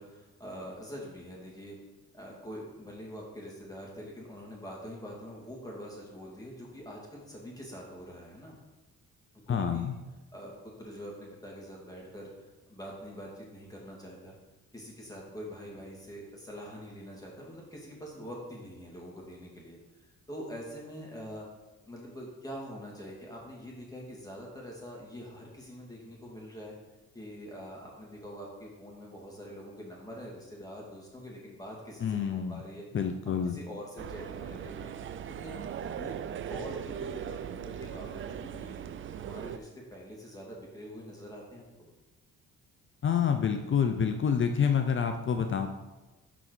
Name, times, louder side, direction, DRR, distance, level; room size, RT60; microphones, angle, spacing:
voice 1, 0.0-1.8 2.1-8.6 9.5-9.9 10.3-14.3 14.7-19.8 20.3-21.5 21.9-26.7 27.1-32.8 33.3-34.9 35.4-35.7 36.0-38.8 39.2-41.9, equal, 10° left, -3 dB, 2.3 m, -44 dB
voice 2, 9.5-10.0 32.0-32.6 32.9-33.6 43.0-45.7, left 7 dB, 40° left, 6 dB, 0.6 m, -27 dB
sound 1, 34.0-39.6, right 8 dB, 45° right, 0.4 m, -39 dB
6.0 x 4.6 x 6.2 m, 1.1 s
cardioid pair, 90°, 30 cm